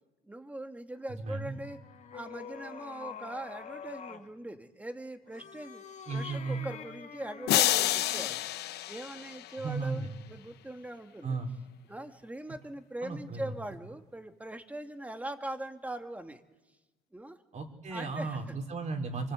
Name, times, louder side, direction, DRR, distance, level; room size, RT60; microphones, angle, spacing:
voice 1, 0.2-1.8 2.1-5.8 6.1-8.4 8.9-11.4 11.9-16.4 17.1-17.4 17.9-18.6, right 1 dB, 10° right, 7 dB, 2.0 m, -41 dB
voice 2, 1.2-1.6 6.1-6.7 9.6-10.2 11.2-11.5 13.0-13.5 17.5-19.3, right 3 dB, 45° right, 4 dB, 4.2 m, -35 dB
sound 1, 1.3-4.3 5.2-8.4, left 7 dB, 45° left, 1.9 m, -46 dB
sound 2, 7.5-9.8, left 14 dB, 75° left, 0.9 m, -29 dB
25.0 x 25.0 x 8.2 m, 1.1 s
cardioid pair, 110°, 17 cm